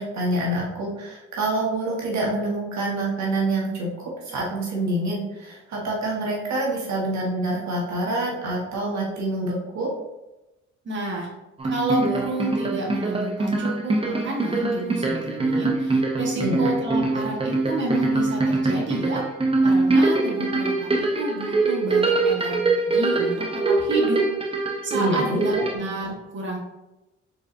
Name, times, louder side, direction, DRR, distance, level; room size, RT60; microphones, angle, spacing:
voice 1, 0.0-9.9 16.3-16.7 24.9-25.7, right 1 dB, 65° right, -3 dB, 1.4 m, -26 dB
voice 2, 10.8-11.3 11.6-19.2 19.6-24.2 24.8-26.6, right 1 dB, 40° right, -3 dB, 1.4 m, -30 dB
sound 1, 11.6-25.8, right 3 dB, 20° right, 0.7 m, -23 dB
4.7 x 4.0 x 2.6 m, 0.98 s
cardioid pair, 90°, 30 cm